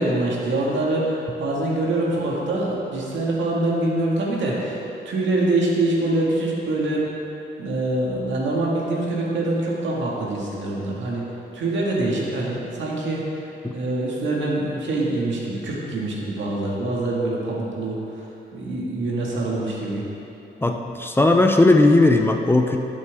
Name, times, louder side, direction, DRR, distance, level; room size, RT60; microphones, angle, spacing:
voice 1, 0.0-7.1 7.6-11.3 11.5-13.2 13.7-20.0, right 2 dB, 75° right, -4 dB, 1.8 m, -24 dB
voice 2, 20.6-22.8, left 2 dB, 10° left, 4 dB, 0.5 m, -17 dB
12.0 x 7.5 x 3.5 m, 3.0 s
cardioid pair, 120°, 19 cm